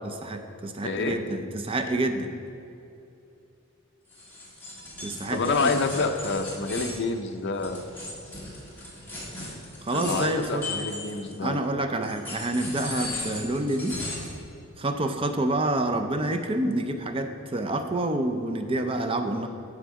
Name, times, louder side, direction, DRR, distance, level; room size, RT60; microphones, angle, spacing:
voice 1, 0.0-2.3 5.0-5.7 9.8-10.6 11.4-14.0 14.8-19.5, right 1 dB, 25° right, 6 dB, 0.5 m, -28 dB
voice 2, 0.8-1.2 5.3-7.8 9.9-11.6, left 3 dB, 55° left, 6 dB, 0.6 m, -28 dB
sound 1, 4.1-11.5 12.0-14.4, left 2 dB, 10° left, 1.8 m, -37 dB
9.1 x 3.8 x 6.2 m, 2.8 s
head